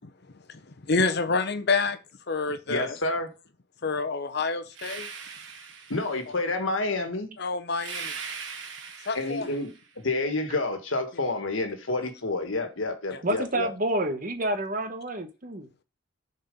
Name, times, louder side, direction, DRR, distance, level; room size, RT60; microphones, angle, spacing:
voice 1, 0.3-2.0 2.3-3.0 3.8-5.1 7.4-8.2 9.0-9.5 13.1-13.2, left 4 dB, 55° left, 0.8 m, -28 dB
voice 2, 2.7-3.3 5.9-7.3 9.1-9.7 10.0-13.7, left 2 dB, 80° left, 1.5 m, -29 dB
sound 1, 4.7-6.4 7.8-9.8, right 5 dB, 65° right, 1.5 m, -40 dB
voice 3, 13.2-15.7, right 1 dB, 45° right, 1.0 m, -28 dB
7.0 x 4.4 x 5.2 m
head